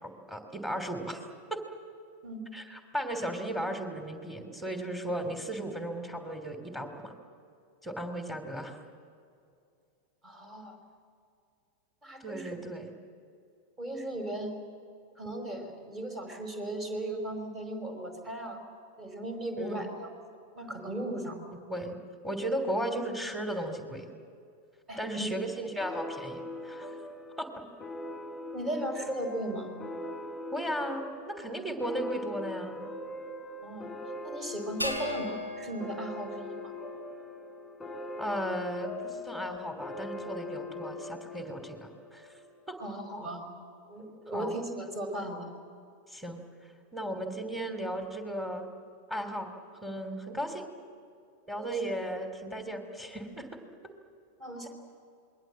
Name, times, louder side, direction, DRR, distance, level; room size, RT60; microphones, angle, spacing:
voice 1, 0.0-1.6 2.5-7.1 7.8-8.8 12.2-12.9 19.6-19.8 21.7-22.0 22.2-24.1 25.0-26.9 27.4-27.6 30.5-32.8 38.2-42.4 42.7-42.8 44.3-44.6 46.1-46.4 46.9-48.7 49.1-49.5 49.8-50.7 51.5-53.5, right 1 dB, 5° right, 4 dB, 3.2 m, -35 dB
voice 2, 10.2-10.8 12.0-12.5 13.8-14.5 15.2-18.6 19.0-20.1 20.5-21.4 24.9-25.3 28.5-29.7 33.6-33.9 34.2-36.7 42.8-43.5 43.9-45.5 51.6-51.7 54.4-54.7, right 1 dB, 25° right, 4 dB, 5.1 m, -37 dB
sound 1, 25.8-42.9, left 1 dB, 10° left, 1.9 m, -41 dB
sound 2, 34.8-37.4, left 1 dB, 85° right, 2.8 m, -38 dB
27.5 x 21.5 x 7.7 m, 2.4 s
figure-of-eight pair, 90°, 0 cm